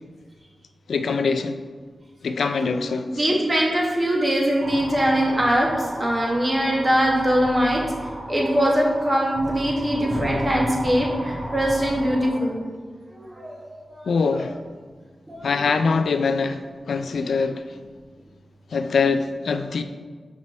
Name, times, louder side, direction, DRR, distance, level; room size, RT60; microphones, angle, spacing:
voice 1, 0.9-1.6 2.2-3.3 14.1-14.6 15.4-16.6 16.9-17.6 18.7-19.8, left 4 dB, 90° left, 8 dB, 0.3 m, -23 dB
voice 2, 3.2-5.7 6.0-7.8 8.3-12.6 13.1-13.5 13.9-14.1 15.3-15.4, equal, 20° right, -2 dB, 1.1 m, -22 dB
sound 1, 4.6-12.3, right 1 dB, 75° right, 1.8 m, -34 dB
5.3 x 4.9 x 4.0 m, 1.5 s
wide cardioid pair, 170°, 0 cm